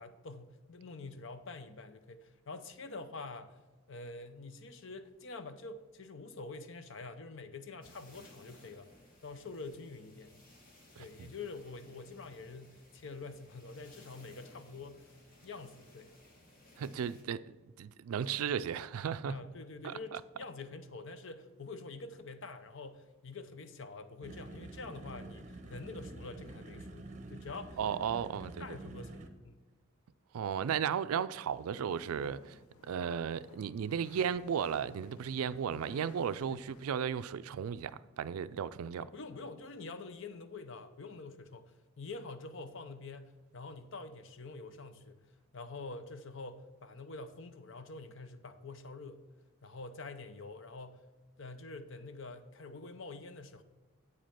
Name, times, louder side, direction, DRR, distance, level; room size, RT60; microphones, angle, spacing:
voice 1, 0.0-3.6 3.9-8.9 9.2-10.5 11.0-15.2 15.4-16.1 19.3-27.8 28.6-29.6 36.5-36.7 39.0-45.2 45.5-49.3 49.6-51.1 51.4-53.6, left 3 dB, 60° left, 0.6 m, -46 dB
sound 1, 7.8-17.2, left 1 dB, 40° left, 1.6 m, -60 dB
voice 2, 11.0-11.3 16.8-17.4 17.8-19.3 19.8-20.2 27.8-28.7 30.3-32.6 32.9-39.0, right 7 dB, 80° right, 0.3 m, -35 dB
sound 2, 24.2-29.3, right 2 dB, 35° right, 0.7 m, -47 dB
sound 3, 31.4-36.8, left 3 dB, 85° left, 0.8 m, -57 dB
8.2 x 5.2 x 5.7 m
head